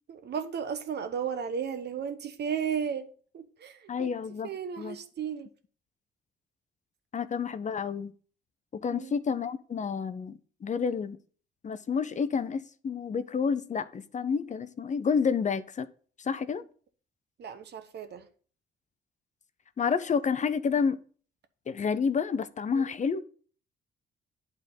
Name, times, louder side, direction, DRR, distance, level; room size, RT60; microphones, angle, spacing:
voice 1, 0.1-3.1 3.3-4.1 4.4-5.5 8.9-9.1 17.4-18.3 22.7-22.8, right 7 dB, 60° right, 1.0 m, -34 dB
voice 2, 3.9-4.5 4.8-5.0 7.1-8.1 8.7-11.2 11.6-15.9 16.2-16.6 19.8-21.0 21.7-23.2, left 6 dB, 35° left, 0.6 m, -29 dB
8.9 x 3.7 x 6.6 m
cardioid pair, 90°, 20 cm